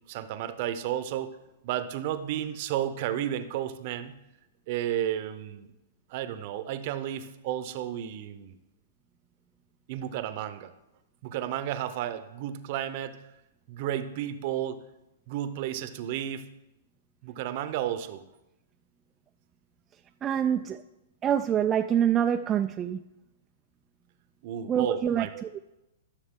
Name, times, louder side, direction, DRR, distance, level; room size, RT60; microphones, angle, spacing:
voice 1, 0.1-1.4 1.6-4.2 4.7-5.7 6.1-8.6 9.9-10.7 11.2-13.2 13.7-14.8 15.3-16.5 17.2-18.2 24.4-25.4, right 11 dB, 50° right, 11 dB, 0.7 m, -32 dB
voice 2, 20.2-20.8 21.2-23.0 24.7-25.5, right 9 dB, 20° right, 6 dB, 0.3 m, -26 dB
13.0 x 6.5 x 3.7 m, 0.95 s
hypercardioid pair, 140°, 0 cm